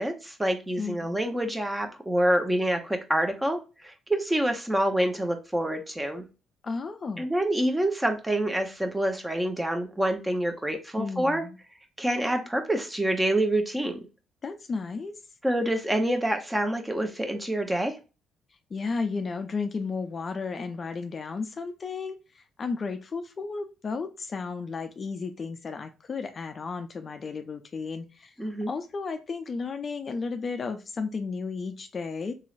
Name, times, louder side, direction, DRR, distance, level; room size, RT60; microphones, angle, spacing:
voice 1, 0.0-6.2 7.2-11.4 12.0-14.0 15.4-18.0 28.4-28.7, right 1 dB, 10° right, 5 dB, 0.9 m, -27 dB
voice 2, 0.8-1.2 6.6-7.3 11.0-11.6 14.4-15.2 18.7-32.3, left 4 dB, 45° left, 7 dB, 0.4 m, -33 dB
3.0 x 3.0 x 2.4 m, 0.31 s
hypercardioid pair, 45°, 0 cm